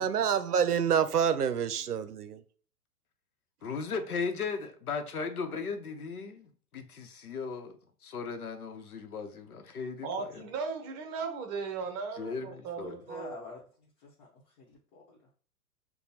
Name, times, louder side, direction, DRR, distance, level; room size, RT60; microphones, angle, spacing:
voice 1, 0.0-2.4, right 7 dB, 85° right, 0.6 m, -27 dB
voice 2, 3.6-7.7 8.0-10.4 12.2-13.0, left 5 dB, 75° left, 0.8 m, -37 dB
voice 3, 10.0-13.4, right 5 dB, 30° right, 0.8 m, -37 dB
voice 4, 12.9-13.6 14.0-15.3, left 3 dB, 40° left, 1.1 m, -48 dB
6.6 x 2.3 x 2.7 m
figure-of-eight pair, 110°, 45 cm